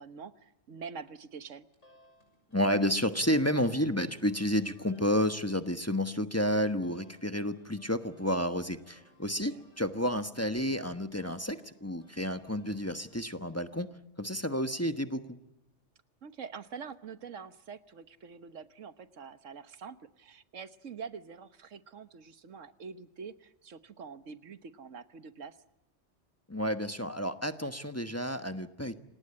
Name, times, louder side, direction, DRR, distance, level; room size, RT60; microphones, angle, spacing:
voice 1, 0.0-1.7 9.5-9.6 16.2-25.6, right 6 dB, 85° right, 12 dB, 1.5 m, -45 dB
sound 1, 1.7-13.3, left 1 dB, 90° left, 6.9 m, -63 dB
voice 2, 2.5-13.9 14.2-15.4 26.5-29.0, equal, 15° left, 9 dB, 1.2 m, -31 dB
28.5 x 19.0 x 8.6 m, 0.91 s
omnidirectional pair, 1.3 m